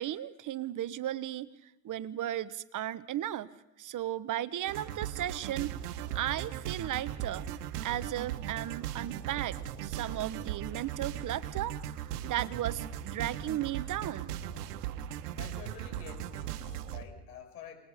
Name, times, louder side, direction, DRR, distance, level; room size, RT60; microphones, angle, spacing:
voice 1, 0.0-3.5 3.8-5.7 6.1-7.4 7.8-11.8 12.2-14.3, right 12 dB, 40° right, 15 dB, 1.2 m, -35 dB
sound 1, 4.7-17.0, right 11 dB, 75° right, 1.6 m, -38 dB
voice 2, 15.3-17.8, left 8 dB, 80° left, 6 dB, 6.3 m, -49 dB
29.0 x 20.5 x 5.1 m, 0.91 s
hypercardioid pair, 80°, 46 cm